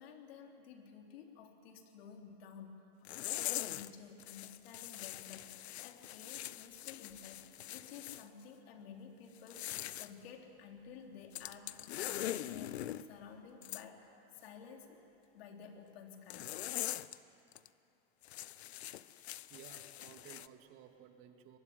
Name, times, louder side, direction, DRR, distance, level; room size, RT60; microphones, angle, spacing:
voice 1, 0.0-15.1 15.3-16.5, left 6 dB, 70° left, 3 dB, 3.5 m, -53 dB
sound 1, 3.0-3.9 4.2-8.2 9.4-10.1 11.3-13.0 13.6-13.8 16.3-17.2 17.5-17.7 18.2-20.5, left 13 dB, 85° left, 0.8 m, -42 dB
voice 2, 19.1-21.6, right 9 dB, 45° right, 6 dB, 2.2 m, -57 dB
24.0 x 20.5 x 9.4 m, 2.8 s
supercardioid pair, 140°, 31 cm